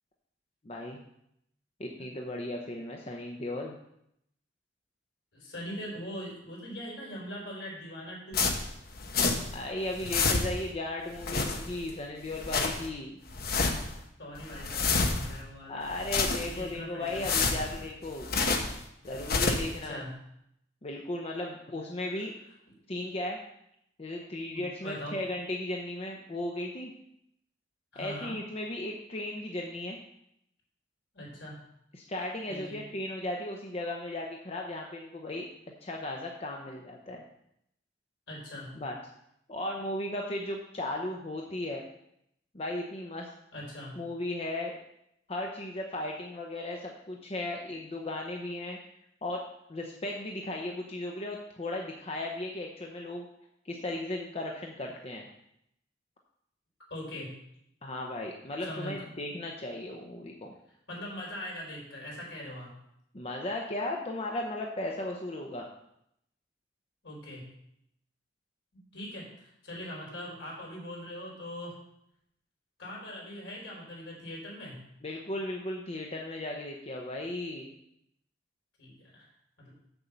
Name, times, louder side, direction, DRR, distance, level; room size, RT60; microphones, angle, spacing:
voice 1, 0.6-1.0 1.8-3.8 9.5-13.2 15.7-18.3 19.0-20.0 20.8-22.3 22.9-23.4 24.0-26.9 28.0-30.0 31.9-35.5 35.8-37.2 38.8-39.0 39.5-41.9 42.5-43.3 44.0-44.8 45.3-48.8 49.2-49.4 49.7-53.2 53.6-55.3 57.8-60.5 63.1-65.7 75.0-77.7, left 1 dB, 35° left, 0 dB, 0.8 m, -36 dB
voice 2, 5.3-8.5 14.2-15.9 16.4-17.6 19.6-20.1 24.5-25.2 27.9-28.4 31.1-31.6 32.5-32.8 38.3-38.7 43.5-43.9 56.9-57.3 58.6-59.1 60.9-62.7 67.0-67.5 68.7-71.8 72.8-74.8 78.8-79.3 79.6-79.7, equal, 75° left, -3 dB, 3.9 m, -41 dB
sound 1, 8.3-9.6 9.9-10.7 11.1-11.9 12.3-12.9 13.3-14.0 14.4-15.4 15.9-16.7 17.1-18.8 19.1-19.8, left 4 dB, 55° left, 1.0 m, -29 dB
7.1 x 5.3 x 7.1 m, 0.77 s
head